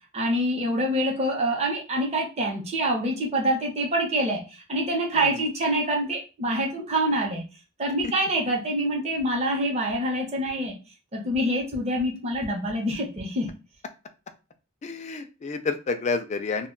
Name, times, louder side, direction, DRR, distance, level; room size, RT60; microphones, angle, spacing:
voice 1, 0.1-4.4 4.7-7.4 7.8-10.8 11.1-13.5, right 1 dB, 30° right, -1 dB, 0.7 m, -26 dB
voice 2, 14.8-16.7, left 4 dB, 35° left, 7 dB, 0.3 m, -29 dB
2.2 x 2.2 x 3.6 m, 0.31 s
head